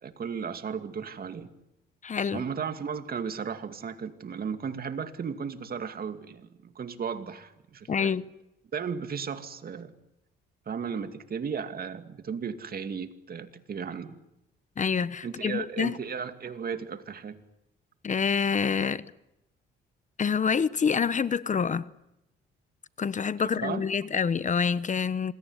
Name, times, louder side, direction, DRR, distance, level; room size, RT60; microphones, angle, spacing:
voice 1, 0.0-1.5 2.3-8.1 8.7-9.9 10.7-14.2 15.2-17.4 23.6-23.8, right 6 dB, 50° right, 2.5 m, -35 dB
voice 2, 2.0-2.4 7.9-8.3 14.8-16.0 18.0-19.0 20.2-21.9 23.0-25.3, left 6 dB, 40° left, 1.0 m, -27 dB
26.5 x 22.0 x 9.8 m
cardioid pair, 90°, 20 cm